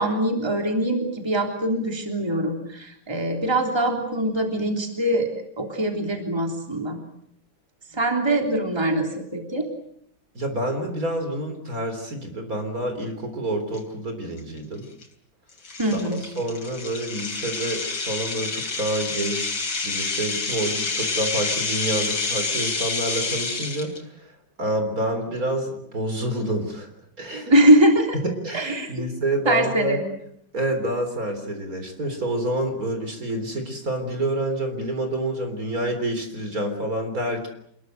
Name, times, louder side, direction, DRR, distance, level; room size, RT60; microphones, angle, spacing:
voice 1, 0.0-7.0 7.9-9.7 15.8-16.2 27.5-28.2 28.5-28.9 29.4-30.0, right 1 dB, 10° right, 3 dB, 3.4 m, -22 dB
voice 2, 10.3-14.9 15.9-19.6 19.8-26.9 27.2-27.5 28.2-30.0 30.5-37.5, right 1 dB, 45° right, 6 dB, 4.2 m, -28 dB
sound 1, 13.7-13.8 14.4-14.6 15.0-15.1 15.6-24.0, left 4 dB, 75° left, 4.1 m, -28 dB
27.5 x 21.5 x 8.0 m, 0.71 s
omnidirectional pair, 2.2 m